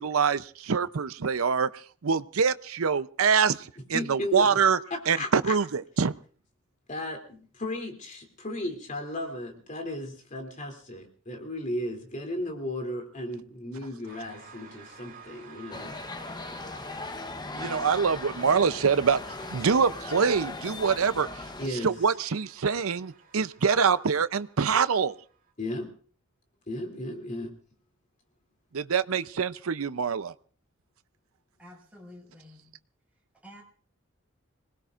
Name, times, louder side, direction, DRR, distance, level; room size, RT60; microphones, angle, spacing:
voice 1, 0.0-4.8 5.1-6.1 17.5-19.2 19.5-21.4 21.7-25.1 28.7-30.3, right 6 dB, 90° right, 14 dB, 0.6 m, -25 dB
voice 2, 3.9-4.6 4.9-5.6 6.9-16.0 17.6-17.7 21.6-21.9 25.6-25.9 26.7-27.5, left 1 dB, 40° left, 3 dB, 3.0 m, -35 dB
sound 1, 14.0-25.5, right 6 dB, 45° right, 3.5 m, -52 dB
sound 2, 15.7-21.7, left 3 dB, 20° left, 0.9 m, -38 dB
voice 3, 31.6-32.8 33.1-33.6, left 1 dB, 5° right, -2 dB, 5.9 m, -50 dB
26.0 x 19.5 x 2.5 m, 0.43 s
head